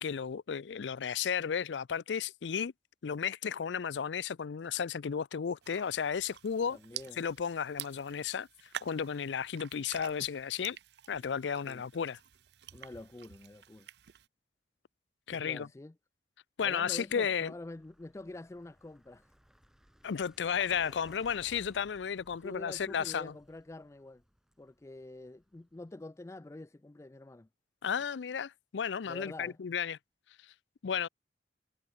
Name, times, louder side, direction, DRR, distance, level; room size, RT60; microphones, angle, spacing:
voice 1, 0.0-2.7 3.0-6.8 7.2-8.5 8.8-10.8 11.1-12.2 15.3-15.7 16.6-17.5 20.0-23.3 27.8-30.0 30.8-31.1, left 7 dB, 85° left, 0.5 m, -33 dB
sound 1, 5.6-14.3, right 10 dB, 70° right, 0.6 m, -49 dB
voice 2, 6.7-7.2 11.6-11.8 12.7-13.9 15.3-15.9 16.6-19.3 22.4-24.2 24.6-27.5 29.1-29.6, left 2 dB, 15° left, 0.3 m, -47 dB
Vehicle, 17.1-25.9, equal, 5° right, 1.6 m, -60 dB
head